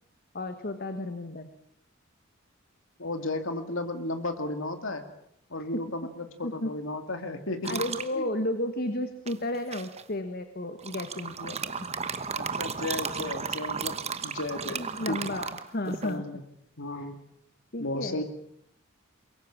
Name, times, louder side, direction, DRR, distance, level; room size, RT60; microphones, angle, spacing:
voice 1, 0.3-1.5 5.7-5.9 6.4-6.7 7.6-11.9 14.7-16.2 17.0-17.1 17.7-18.2, left 1 dB, 50° left, 9 dB, 1.5 m, -33 dB
voice 2, 3.0-5.0 5.5-7.8 8.1-8.3 12.3-15.2 15.9-16.4 16.8-17.3 17.8-18.2, left 2 dB, 75° left, 7 dB, 2.4 m, -34 dB
sound 1, 7.6-8.1 9.3-10.0 10.8-16.1, right 6 dB, 30° right, 1.1 m, -34 dB
23.5 x 22.0 x 7.4 m, 0.72 s
head